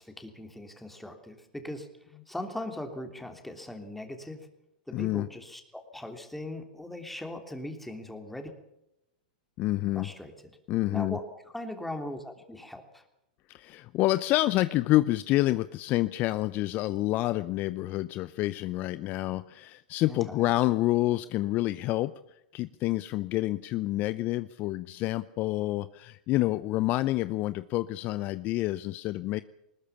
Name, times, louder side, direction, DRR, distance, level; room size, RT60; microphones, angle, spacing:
voice 1, 0.0-4.5 4.9-8.5 9.9-10.5 10.9-11.2 11.5-13.0 20.1-20.5, left 1 dB, 5° left, 5 dB, 3.2 m, -40 dB
voice 2, 4.9-5.3 9.6-10.1 10.7-11.2 13.5-22.1 22.5-29.4, left 17 dB, 40° left, 15 dB, 0.7 m, -28 dB
20.5 x 20.0 x 7.2 m, 0.86 s
hypercardioid pair, 115°, 5 cm